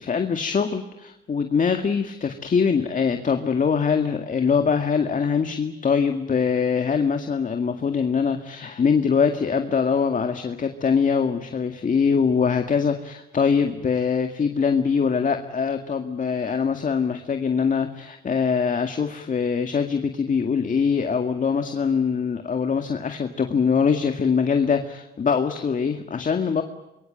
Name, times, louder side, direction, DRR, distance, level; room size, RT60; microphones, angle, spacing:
voice 1, 0.0-26.6, left 6 dB, 40° left, 6 dB, 2.0 m, -23 dB
25.5 x 22.5 x 9.1 m, 0.95 s
cardioid pair, 90°, 20 cm